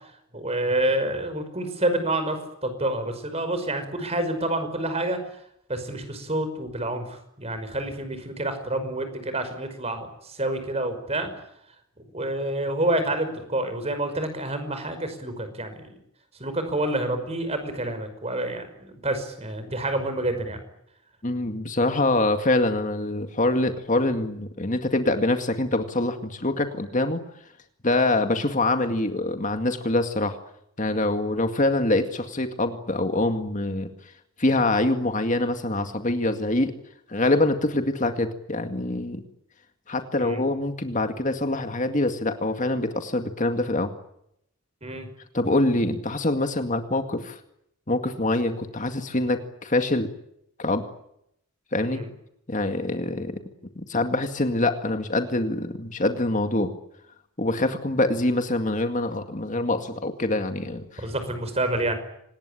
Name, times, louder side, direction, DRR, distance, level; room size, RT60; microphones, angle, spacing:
voice 1, 0.3-5.2 5.7-11.3 12.1-15.9 16.4-20.6 40.2-40.4 44.8-45.1 51.9-52.1 61.0-61.9, right 1 dB, 30° right, 9 dB, 5.5 m, -28 dB
voice 2, 21.2-27.2 27.8-30.4 30.8-33.9 34.4-36.7 37.1-39.2 39.9-43.9 45.3-47.4 47.9-50.1 50.6-50.8 51.7-52.0 52.5-53.4 53.8-56.7 57.4-61.1, left 2 dB, 35° left, 7 dB, 2.1 m, -25 dB
26.0 x 20.0 x 10.0 m, 0.76 s
head